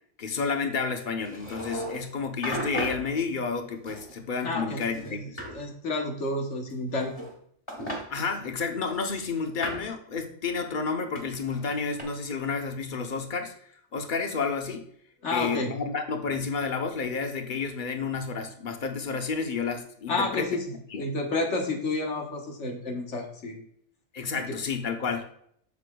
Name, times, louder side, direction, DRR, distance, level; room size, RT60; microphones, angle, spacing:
voice 1, 0.2-5.3 8.1-13.5 13.9-14.8 15.3-20.5 20.9-21.0 24.1-25.2, left 5 dB, 45° left, 5 dB, 0.9 m, -30 dB
sound 1, 1.3-2.1 2.4-3.0 3.9-4.5 4.8-5.5 6.7-7.4 7.7-8.0 8.9-9.9 11.2-12.0, equal, 25° left, 1.9 m, -36 dB
voice 2, 4.4-7.2 15.2-15.7 20.1-20.6 21.0-23.6 24.5-24.6, left 2 dB, 80° left, 2 dB, 1.5 m, -30 dB
8.3 x 6.5 x 2.3 m, 0.68 s
omnidirectional pair, 1.2 m